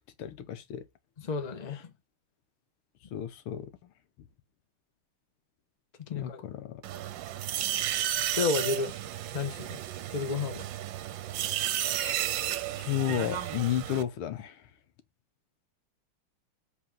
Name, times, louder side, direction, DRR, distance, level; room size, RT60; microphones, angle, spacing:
voice 1, 0.2-0.8 3.1-3.7 6.1-6.8 12.8-14.6, left 11 dB, 80° left, 1.8 m, -32 dB
voice 2, 1.2-1.9 6.0-6.4 8.3-8.9 9.3-9.8 10.1-10.7, left 4 dB, 25° left, 1.0 m, -31 dB
Electric butcher bone saw, 6.8-14.0, right 12 dB, 70° right, 1.3 m, -33 dB
7.4 x 3.9 x 5.9 m
omnidirectional pair, 2.3 m